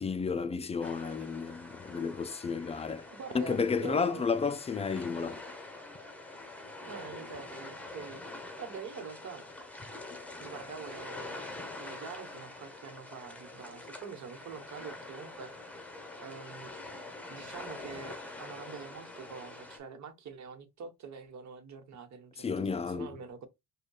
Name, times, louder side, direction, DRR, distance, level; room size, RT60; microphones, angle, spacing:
voice 1, 0.0-3.1 3.3-5.4 22.4-23.1, left 5 dB, 20° left, 0.4 m, -32 dB
sound 1, 0.8-19.8, left 2 dB, 5° left, 0.9 m, -45 dB
voice 2, 3.1-4.3 6.9-9.5 10.4-11.5 11.8-15.6 16.2-16.7 17.3-23.5, right 6 dB, 65° right, 1.1 m, -45 dB
5.0 x 2.2 x 2.3 m
cardioid pair, 90°, 30 cm